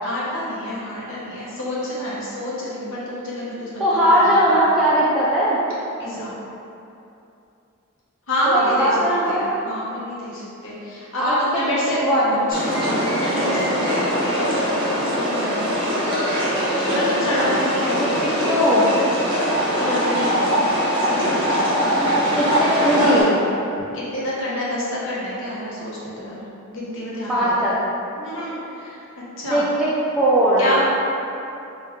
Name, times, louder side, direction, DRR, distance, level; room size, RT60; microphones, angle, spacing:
voice 1, 0.0-4.6 6.0-6.3 8.3-9.0 9.3-12.0 12.3-16.0 16.7-18.3 19.7-20.8 21.3-21.6 23.9-26.4 26.7-27.7 28.1-29.0 29.4-29.7 30.6-30.9, left 1 dB, 65° left, -7 dB, 0.8 m, -28 dB
voice 2, 3.8-5.6 8.5-9.5 11.2-12.4 18.2-18.9 22.4-23.4 27.3-27.7 29.5-30.6, equal, ahead, -9 dB, 0.3 m, -19 dB
sound 1, 12.5-23.2, equal, 25° right, 0.7 m, -22 dB
3.0 x 2.3 x 3.3 m, 2.8 s
head